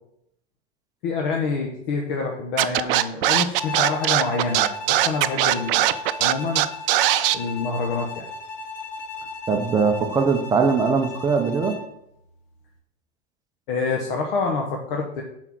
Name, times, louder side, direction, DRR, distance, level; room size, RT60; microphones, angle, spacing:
voice 1, 1.0-6.6 7.3-8.3 13.7-15.2, left 4 dB, 60° left, 1 dB, 1.2 m, -27 dB
Scratching (performance technique), 2.6-7.3, right 15 dB, 65° right, 0.5 m, -19 dB
Bowed string instrument, 3.6-11.9, left 3 dB, 40° left, 1.1 m, -36 dB
voice 2, 9.5-11.8, right 5 dB, 10° right, 4 dB, 0.6 m, -21 dB
6.0 x 4.5 x 6.1 m, 0.77 s
supercardioid pair, 150°, 30 cm